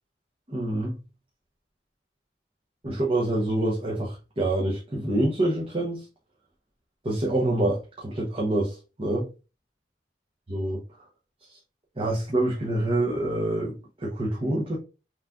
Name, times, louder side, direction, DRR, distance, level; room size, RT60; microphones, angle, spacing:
voice 1, 0.5-0.9 2.8-6.0 7.0-9.3 10.5-10.8 11.5-11.6 12.0-14.8, right 1 dB, 30° right, 0.9 m, -26 dB
5.7 x 3.2 x 2.5 m
head